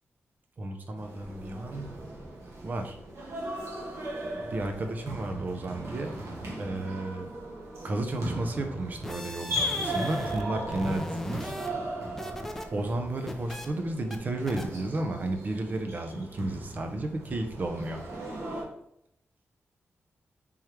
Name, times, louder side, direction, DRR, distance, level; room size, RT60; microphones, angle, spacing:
voice 1, 0.6-2.0 2.6-3.0 4.5-6.2 6.6-7.3 7.8-11.5 12.7-18.0, right 2 dB, 40° right, 5 dB, 0.6 m, -33 dB
sound 1, 1.0-18.6, right 1 dB, 80° right, 1.2 m, -37 dB
sound 2, 8.9-10.5 10.7-12.7 13.0-13.7 14.1-14.2 14.5-14.7, left 1 dB, 5° left, 0.4 m, -38 dB
3.5 x 3.1 x 4.5 m, 0.75 s
wide cardioid pair, 165°, 5 cm